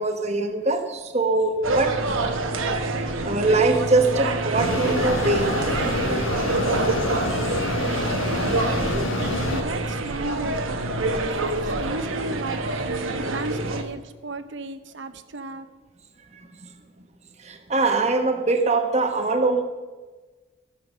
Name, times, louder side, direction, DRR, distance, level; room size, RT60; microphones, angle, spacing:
voice 1, 0.0-2.0 3.2-5.5 11.0-11.1 16.3-16.5 17.4-19.6, right 3 dB, 30° right, 6 dB, 1.1 m, -22 dB
sound 1, 1.6-13.8, right 2 dB, 80° right, 1.1 m, -26 dB
Mechanisms, 4.6-9.6, left 2 dB, 80° left, 1.4 m, -27 dB
voice 2, 8.3-15.7, right 2 dB, 60° right, 10 dB, 0.8 m, -35 dB
14.5 x 7.1 x 6.2 m, 1.3 s
head